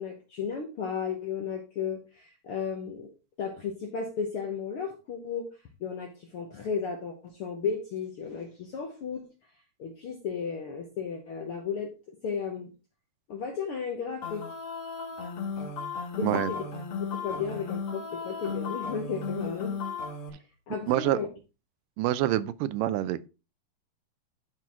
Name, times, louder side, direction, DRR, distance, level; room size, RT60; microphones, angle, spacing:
voice 1, 0.0-3.1 3.4-5.5 5.8-9.2 9.8-12.7 13.3-14.4 16.2-16.6 17.0-19.8 20.3-21.3, left 6 dB, 65° left, 1.3 m, -34 dB
sound 1, 14.2-20.3, left 5 dB, 50° left, 2.1 m, -35 dB
voice 2, 20.9-21.2 22.0-23.3, right 14 dB, 85° right, 2.1 m, -26 dB
12.0 x 4.5 x 3.6 m
omnidirectional pair, 3.8 m